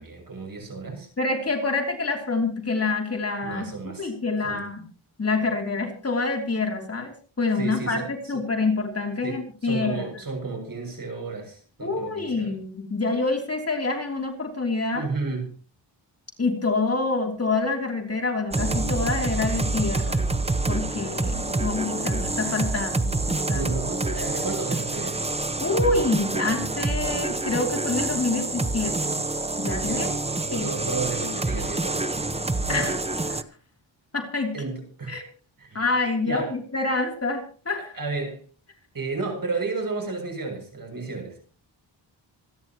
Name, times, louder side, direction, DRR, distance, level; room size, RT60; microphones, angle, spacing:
voice 1, 0.0-1.1 3.4-4.1 4.4-4.6 7.6-8.4 9.2-12.5 14.9-15.5 22.7-22.8 23.5-25.3 29.8-32.2 32.7-33.0 34.5-35.3 35.6-35.8 36.3-36.6 37.9-38.4 38.9-41.4, right 3 dB, 45° right, 2 dB, 7.0 m, -32 dB
voice 2, 1.2-3.7 4.0-4.8 5.2-10.1 11.8-15.1 16.4-20.2 20.7-23.0 23.3-23.7 25.6-29.2 29.6-30.1 30.5-30.9 32.7-33.0 33.3-33.4 34.1-34.5 35.1-35.2 35.7-38.0, left 3 dB, 30° left, 2 dB, 3.1 m, -27 dB
sound 1, 18.5-33.4, right 2 dB, 15° right, 0.9 m, -27 dB
27.0 x 10.5 x 3.0 m, 0.39 s
wide cardioid pair, 120°, 47 cm